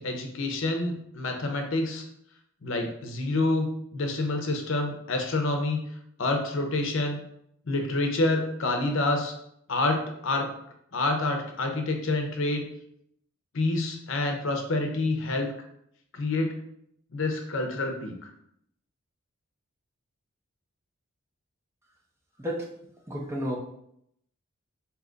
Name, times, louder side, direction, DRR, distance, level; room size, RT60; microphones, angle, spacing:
voice 1, 0.0-2.0 2.6-3.7 3.9-5.8 6.2-7.2 7.7-9.3 9.7-10.5 10.9-12.7 13.5-15.5 16.1-16.5 17.1-18.3, left 2 dB, 60° left, 4 dB, 0.6 m, -27 dB
voice 2, 23.1-23.6, equal, 10° right, -2 dB, 0.5 m, -31 dB
3.7 x 2.8 x 3.8 m, 0.73 s
head